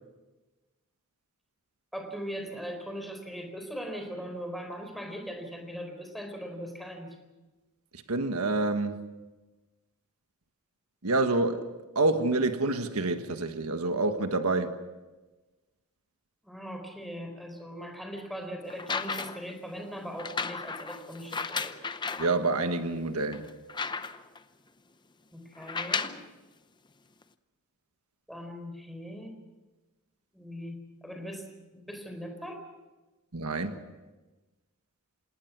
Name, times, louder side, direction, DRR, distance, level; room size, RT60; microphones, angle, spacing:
voice 1, 1.9-7.2 16.4-21.7 25.3-26.1 28.3-29.3 30.3-31.5 31.7-32.6, equal, ahead, 4 dB, 4.2 m, -40 dB
voice 2, 7.9-9.1 11.0-14.8 22.2-23.5 33.3-33.8, right 2 dB, 90° right, 8 dB, 1.5 m, -28 dB
sound 1, 18.7-19.5 20.2-22.3 22.9-23.0 23.3-24.4 25.6-26.3 27.2-27.3, left 5 dB, 20° left, 0.7 m, -34 dB
27.0 x 19.0 x 6.1 m, 1.2 s
head